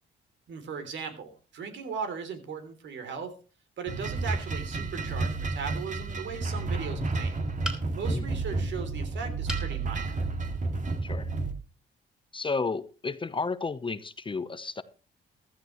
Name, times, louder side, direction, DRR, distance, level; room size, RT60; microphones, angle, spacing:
voice 1, 0.5-3.4 3.8-7.4 7.9-10.1, right 6 dB, 65° right, 8 dB, 3.2 m, -38 dB
sound 1, 3.9-11.5, right 3 dB, 40° right, 2.2 m, -31 dB
sound 2, 7.6-8.2 9.5-9.7 10.3-10.4 10.7-10.8, left 1 dB, 5° right, 3.4 m, -36 dB
voice 2, 12.3-14.8, left 4 dB, 25° left, 14 dB, 0.8 m, -32 dB
15.0 x 13.5 x 3.1 m, 0.35 s
cardioid pair, 90°, 20 cm